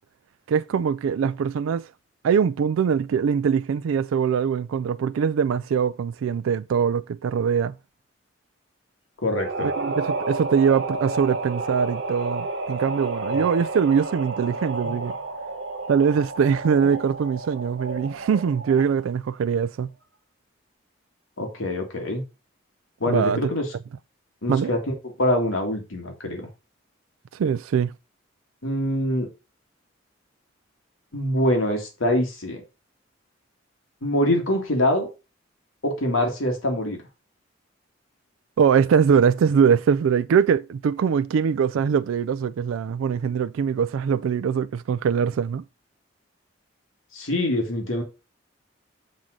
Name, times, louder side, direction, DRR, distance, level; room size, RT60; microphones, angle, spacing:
voice 1, 0.5-1.9 2.2-7.8 9.6-15.1 15.9-19.9 23.1-23.5 24.5-24.7 27.3-27.9 38.6-45.6, right 7 dB, 85° right, 0.3 m, -22 dB
voice 2, 9.2-9.7 21.4-22.2 23.0-23.7 24.4-24.8 25.2-26.5 28.6-29.3 31.1-32.6 34.0-35.1 35.8-37.0 47.1-48.0, left 1 dB, 85° left, 2.0 m, -24 dB
sound 1, 9.3-19.0, right 2 dB, 60° right, 1.5 m, -31 dB
7.4 x 3.8 x 6.2 m
head